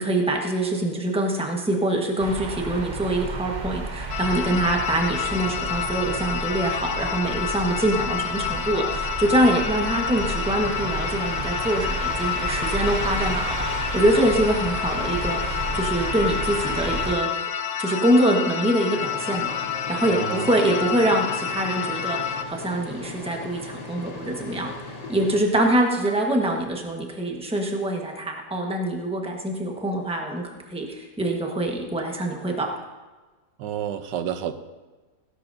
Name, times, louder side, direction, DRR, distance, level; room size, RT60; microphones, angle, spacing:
voice 1, 0.0-17.3 17.8-19.5 19.9-24.7 25.1-32.7, right 1 dB, 5° right, 1 dB, 1.1 m, -24 dB
sound 1, 2.2-17.1, right 2 dB, 40° right, 0.6 m, -31 dB
sound 2, 4.1-22.4, left 8 dB, 65° left, 0.6 m, -29 dB
sound 3, 18.9-25.4, left 2 dB, 90° left, 2.4 m, -38 dB
voice 2, 20.1-20.6 33.6-34.5, right 9 dB, 90° right, 9 dB, 1.4 m, -30 dB
16.5 x 11.5 x 2.7 m, 1.3 s
omnidirectional pair, 1.8 m